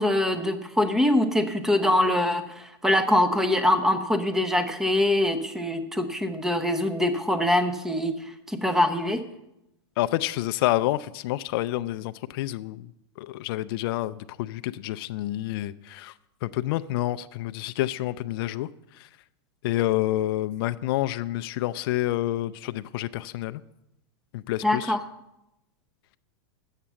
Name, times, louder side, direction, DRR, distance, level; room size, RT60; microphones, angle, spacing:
voice 1, 0.0-9.2 24.6-25.0, left 1 dB, 5° right, 0.7 m, -24 dB
voice 2, 10.0-12.9 13.2-16.1 16.4-19.1 19.6-23.6 24.3-24.9, left 15 dB, 55° left, 0.4 m, -28 dB
8.7 x 7.4 x 6.9 m
supercardioid pair, 145°, 14 cm